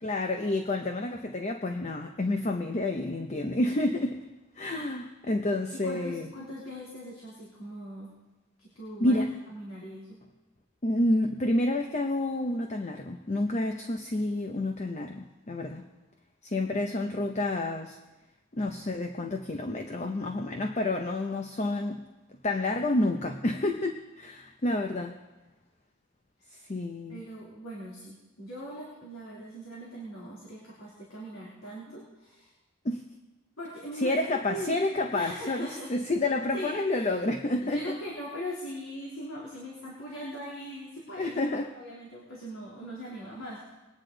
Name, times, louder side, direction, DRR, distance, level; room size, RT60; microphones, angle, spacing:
voice 1, 0.0-4.2 4.6-6.3 9.0-9.3 10.8-15.9 16.4-18.0 18.5-22.0 22.4-25.2 26.5-27.2 31.9-32.0 32.8-33.0 34.0-38.0 41.2-41.7, left 2 dB, 35° left, 5 dB, 0.7 m, -29 dB
voice 2, 5.7-8.1 8.6-9.2 9.5-10.2 26.5-26.6 27.1-32.5 33.6-34.2 34.5-34.8 35.1-35.9 36.5-37.1 37.6-41.3 41.7-43.7, equal, 80° left, -6 dB, 3.2 m, -40 dB
21.0 x 9.7 x 3.9 m, 1.1 s
head